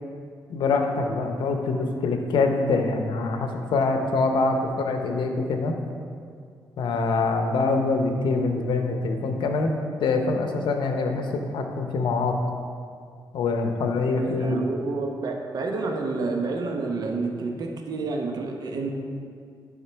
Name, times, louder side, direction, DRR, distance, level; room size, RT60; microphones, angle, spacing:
voice 1, 0.5-5.7 6.8-9.7 10.0-12.3 13.3-14.6, left 3 dB, 80° left, 4 dB, 0.7 m, -24 dB
voice 2, 14.2-18.9, right 3 dB, 55° right, 2 dB, 0.8 m, -29 dB
9.5 x 3.7 x 4.5 m, 2.2 s
cardioid pair, 110°, 8 cm